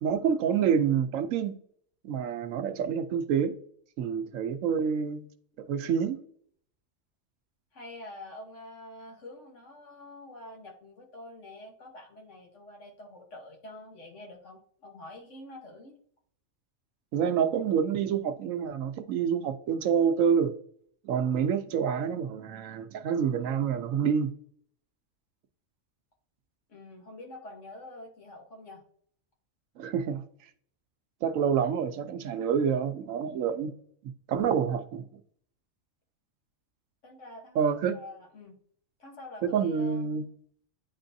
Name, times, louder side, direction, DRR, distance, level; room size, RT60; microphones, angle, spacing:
voice 1, 0.0-1.6 2.0-3.6 4.0-5.3 5.6-6.2 17.1-20.5 21.0-24.3 29.8-30.2 31.2-33.7 34.3-35.0 37.6-37.9 39.4-40.3, right 7 dB, 80° right, 1.0 m, -27 dB
voice 2, 7.7-16.0 26.7-28.8 37.0-38.6 39.0-40.3, left 1 dB, 65° left, 1.5 m, -47 dB
9.6 x 3.8 x 2.6 m
omnidirectional pair, 1.4 m